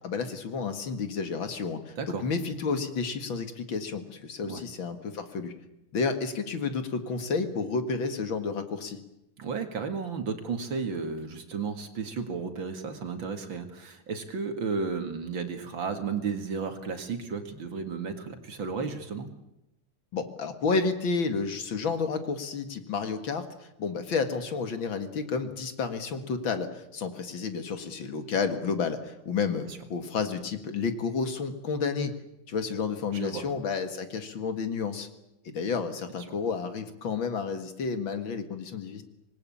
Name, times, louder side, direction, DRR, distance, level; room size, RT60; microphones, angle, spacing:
voice 1, 0.0-5.5 5.9-9.0 20.1-23.5 23.8-32.1 32.5-35.1 35.5-39.0, left 5 dB, 65° left, 8 dB, 2.6 m, -31 dB
voice 2, 9.4-19.3 29.6-29.8 33.1-33.5, right 5 dB, 65° right, 7 dB, 2.8 m, -33 dB
26.0 x 20.0 x 8.7 m, 0.90 s
omnidirectional pair, 2.3 m